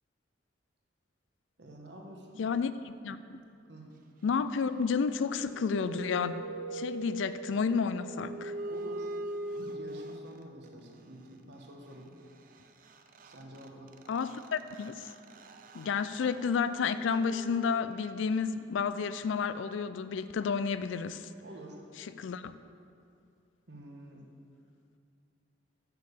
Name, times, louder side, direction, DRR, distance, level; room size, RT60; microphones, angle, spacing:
voice 1, 1.6-2.5 3.7-3.9 8.7-9.1 9.5-12.1 13.2-13.9 21.4-21.8 23.7-24.3, right 1 dB, 65° right, 1 dB, 1.2 m, -48 dB
voice 2, 2.4-2.7 3.0-3.4 4.2-6.4 6.7-8.5 14.1-15.1 15.7-21.3 22.2-22.6, left 5 dB, 80° left, 13 dB, 0.4 m, -31 dB
sound 1, 5.3-10.7 12.6-12.7 12.8-18.3, right 2 dB, 45° right, 0.5 m, -42 dB
6.7 x 6.5 x 6.7 m, 2.4 s
head